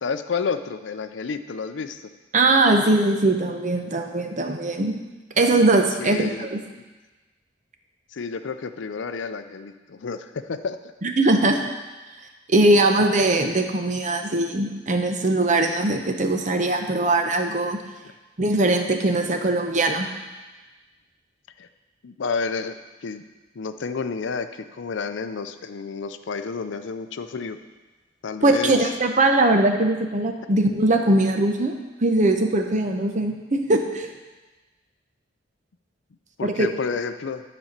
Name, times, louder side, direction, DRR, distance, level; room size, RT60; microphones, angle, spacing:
voice 1, 0.0-2.0 6.0-6.5 8.1-10.9 21.6-21.7 22.0-22.7 23.0-23.2 23.5-27.6 28.2-28.9 36.4-37.4, left 5 dB, 70° left, 10 dB, 0.5 m, -30 dB
voice 2, 2.3-4.9 5.4-6.6 11.0-11.6 12.5-17.8 18.4-20.1 28.4-31.7 32.0-34.1 36.4-36.7, right 2 dB, 40° right, 5 dB, 0.8 m, -21 dB
10.0 x 4.3 x 6.5 m, 1.2 s
head